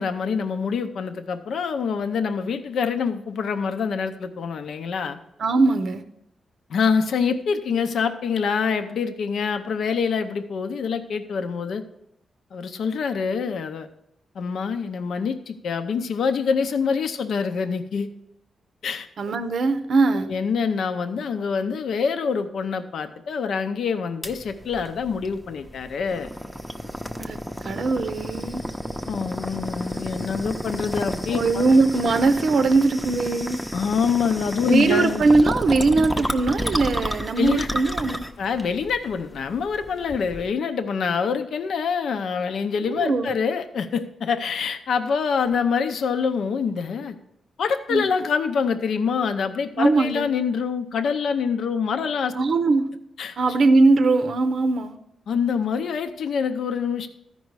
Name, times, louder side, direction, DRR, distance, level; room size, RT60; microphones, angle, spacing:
voice 1, 0.0-5.2 6.7-11.8 12.5-13.9 14.3-18.1 18.8-19.1 20.3-26.3 29.1-31.6 33.7-35.2 37.4-37.7 38.4-47.2 47.6-52.3 53.2-53.4 55.3-57.1, left 6 dB, 75° left, 8 dB, 0.7 m, -25 dB
voice 2, 5.4-6.0 19.2-20.3 27.2-28.6 31.3-33.6 34.7-38.2 42.9-43.3 47.9-48.1 49.8-50.3 52.3-52.9 53.4-55.0, right 3 dB, 60° right, 9 dB, 0.6 m, -20 dB
sound 1, 24.2-40.5, equal, ahead, 0.7 m, -31 dB
13.5 x 5.4 x 4.7 m, 0.81 s
cardioid pair, 120°, 0 cm